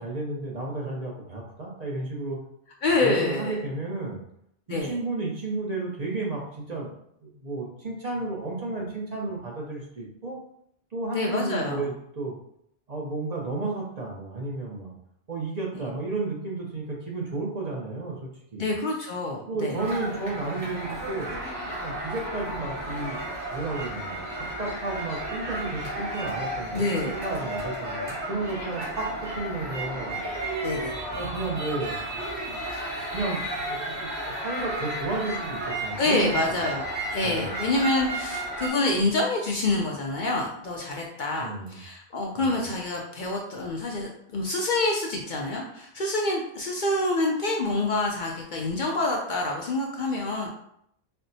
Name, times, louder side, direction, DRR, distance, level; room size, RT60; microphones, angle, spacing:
voice 1, 0.0-2.4 3.0-4.2 4.7-6.9 7.2-10.4 10.9-12.4 12.9-14.9 15.3-18.7 19.5-21.4 21.8-23.2 23.5-29.1 29.4-30.2 31.1-32.0 33.1-36.4 37.2-37.6 41.4-41.8 42.3-42.6, right 3 dB, 45° right, -3 dB, 0.7 m, -32 dB
voice 2, 2.8-3.6 4.7-4.9 11.1-11.9 15.7-15.8 18.6-19.8 26.7-27.2 30.6-31.0 36.0-50.5, left 2 dB, 60° left, -1 dB, 0.6 m, -27 dB
sound 1, 19.8-38.7, right 1 dB, 85° right, 1.4 m, -33 dB
4.2 x 2.1 x 2.6 m, 0.72 s
omnidirectional pair, 1.1 m